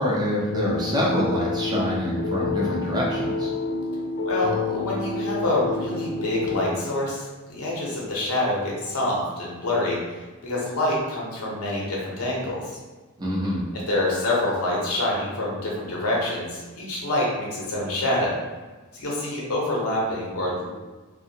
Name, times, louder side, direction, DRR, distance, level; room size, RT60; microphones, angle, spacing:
voice 1, 0.0-3.5 13.2-13.6, left 1 dB, 20° right, -5 dB, 0.5 m, -25 dB
sound 1, 0.5-6.8, left 3 dB, 55° left, 0.3 m, -28 dB
voice 2, 4.2-10.0 10.4-12.7 13.7-18.4 18.9-20.7, left 1 dB, 85° left, -4 dB, 0.8 m, -26 dB
2.6 x 2.2 x 2.7 m, 1.3 s
head